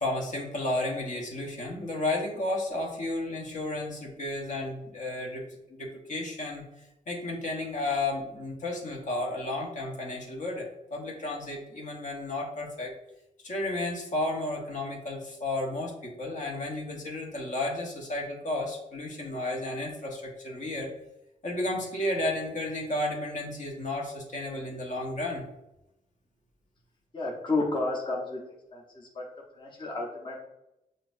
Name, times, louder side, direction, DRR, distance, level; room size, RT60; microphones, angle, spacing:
voice 1, 0.0-5.4 5.7-6.6 7.1-12.9 13.4-20.9 21.4-25.5, left 2 dB, 55° left, 0 dB, 1.1 m, -32 dB
voice 2, 27.1-28.4 28.7-29.3 29.5-30.4, left 2 dB, 30° left, -3 dB, 0.9 m, -31 dB
5.7 x 2.6 x 2.6 m, 0.89 s
cardioid pair, 65°, 15 cm